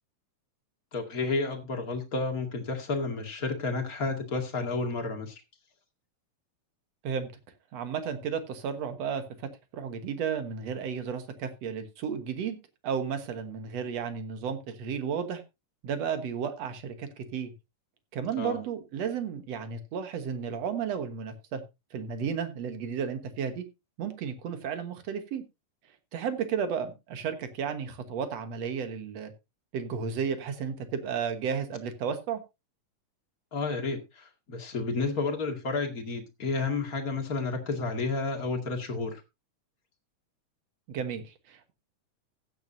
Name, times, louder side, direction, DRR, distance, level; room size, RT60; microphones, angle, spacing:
voice 1, 0.9-5.4 18.4-18.6 33.5-39.2, left 3 dB, 30° left, 3 dB, 2.1 m, -31 dB
voice 2, 7.7-9.2 9.7-12.6 12.8-15.4 15.8-17.5 18.1-21.6 21.9-23.6 24.0-25.4 26.1-29.3 29.7-32.4 40.9-41.7, right 7 dB, 60° right, 9 dB, 2.3 m, -33 dB
15.5 x 9.6 x 2.7 m, 0.25 s
omnidirectional pair, 3.8 m